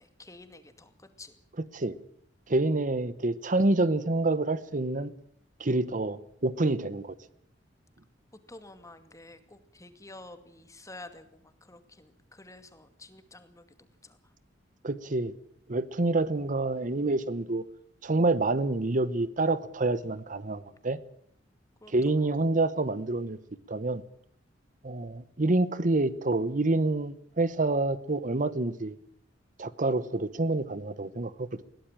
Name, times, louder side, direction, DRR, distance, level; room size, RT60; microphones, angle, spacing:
voice 1, 0.0-1.3 8.5-13.8 14.0-14.2 21.8-22.4, left 2 dB, 20° left, 2.3 m, -50 dB
voice 2, 2.5-5.1 5.6-7.2 14.8-15.3 15.7-17.6 18.0-21.0 21.9-23.4 23.7-24.0 24.8-28.9 29.6-31.7, right 2 dB, 45° right, 0.9 m, -27 dB
21.5 x 16.5 x 9.0 m
head